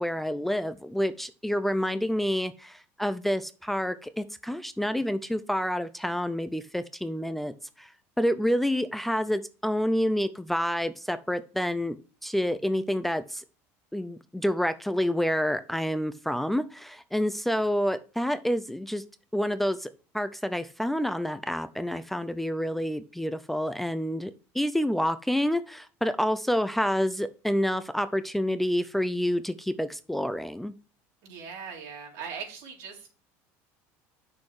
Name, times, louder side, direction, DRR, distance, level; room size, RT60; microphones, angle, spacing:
voice 1, 0.0-7.9 8.2-12.0 12.2-13.4 13.9-19.0 19.3-19.9 20.1-30.7, equal, 5° left, 11 dB, 0.4 m, -28 dB
voice 2, 31.2-33.1, right 6 dB, 75° right, 0 dB, 3.2 m, -40 dB
7.6 x 6.3 x 4.7 m, 0.36 s
cardioid pair, 140°, 6 cm